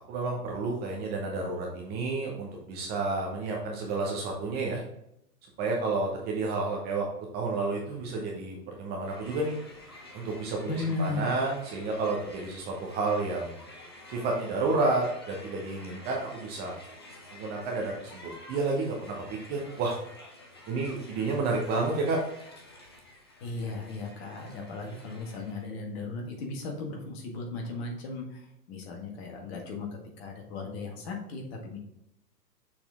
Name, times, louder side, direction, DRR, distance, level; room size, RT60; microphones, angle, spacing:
voice 1, 0.1-4.8 5.6-7.0 7.3-9.6 10.1-13.6 14.1-16.7 17.3-19.2 19.5-19.9 20.7-22.2, right 3 dB, 20° right, -1 dB, 0.9 m, -30 dB
Crowd, 9.0-25.7, left 1 dB, 20° left, 0.3 m, -50 dB
voice 2, 10.6-11.3 23.4-29.9 30.2-31.8, left 3 dB, 40° left, 1 dB, 1.8 m, -36 dB
6.6 x 4.3 x 3.6 m, 0.79 s
figure-of-eight pair, 115°, 49 cm